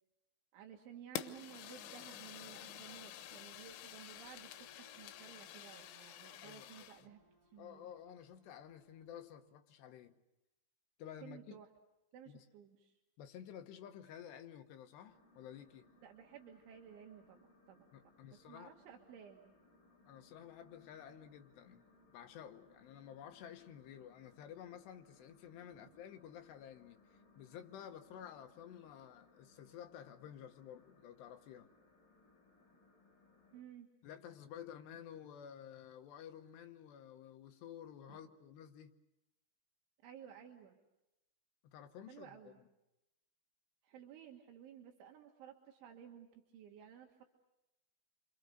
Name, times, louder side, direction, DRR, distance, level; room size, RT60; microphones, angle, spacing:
voice 1, 0.5-7.2 7.5-7.9 11.2-11.7 12.1-13.0 16.0-17.9 18.5-19.5 33.5-33.9 38.1-38.2 40.0-40.8 42.1-42.6 43.8-47.3, right 9 dB, 75° right, 3.9 m, -55 dB
Fire, 1.2-7.1, left 12 dB, 85° left, 3.6 m, -49 dB
sound 1, 2.8-9.3, right 1 dB, 15° right, 4.6 m, -70 dB
voice 2, 6.4-6.9 7.6-10.1 11.0-11.6 12.3-12.5 13.2-15.9 17.9-18.7 20.1-21.8 22.1-31.7 34.0-38.9 41.6-42.7, left 9 dB, 70° left, 3.0 m, -52 dB
sound 2, 15.0-33.6, left 3 dB, 45° left, 4.7 m, -68 dB
29.0 x 25.0 x 6.6 m
omnidirectional pair, 5.6 m